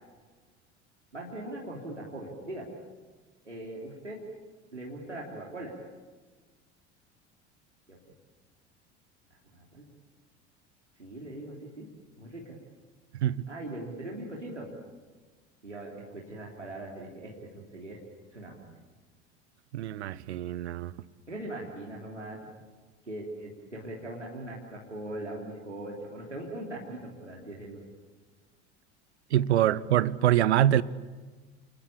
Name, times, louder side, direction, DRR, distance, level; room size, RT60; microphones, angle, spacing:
voice 1, 1.1-2.7 3.4-4.2 4.7-5.7 7.9-8.0 9.3-9.9 11.0-11.9 12.2-12.6 13.5-14.7 15.6-18.0 18.3-18.7 21.3-22.4 23.0-27.8, right 1 dB, 85° right, 3.4 m, -40 dB
voice 2, 13.1-13.5 19.7-20.9 29.3-30.8, right 12 dB, 70° right, 0.9 m, -25 dB
29.5 x 21.0 x 8.7 m
figure-of-eight pair, 65°, 35 cm